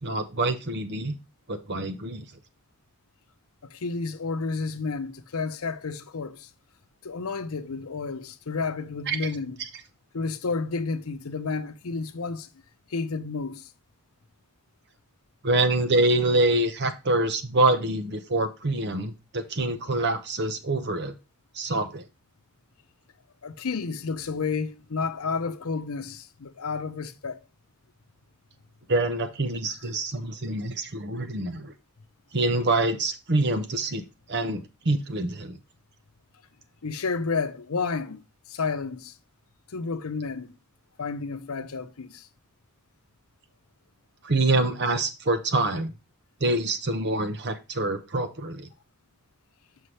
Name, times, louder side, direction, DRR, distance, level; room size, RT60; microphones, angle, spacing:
voice 1, 0.0-1.2 1.5-2.3 9.1-9.2 15.4-21.1 21.6-22.0 28.9-31.7 32.3-34.0 34.3-35.6 44.2-45.9 46.4-48.7, right 2 dB, 50° right, 0.9 m, -25 dB
voice 2, 3.7-6.5 7.0-9.6 10.1-12.5 12.9-13.7 23.4-27.4 36.8-38.2 38.5-39.1 39.7-40.5 41.0-42.3, left 4 dB, 80° left, 0.7 m, -31 dB
6.4 x 5.7 x 3.2 m
head